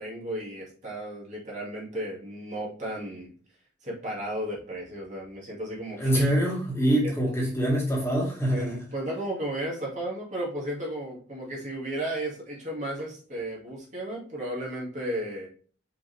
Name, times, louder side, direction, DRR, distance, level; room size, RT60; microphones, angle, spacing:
voice 1, 0.0-3.3 3.8-6.2 7.0-7.1 8.5-15.5, right 1 dB, 40° right, -4 dB, 2.5 m, -34 dB
voice 2, 6.0-8.8, right 1 dB, 15° left, -4 dB, 2.1 m, -25 dB
5.6 x 5.0 x 3.5 m, 0.43 s
head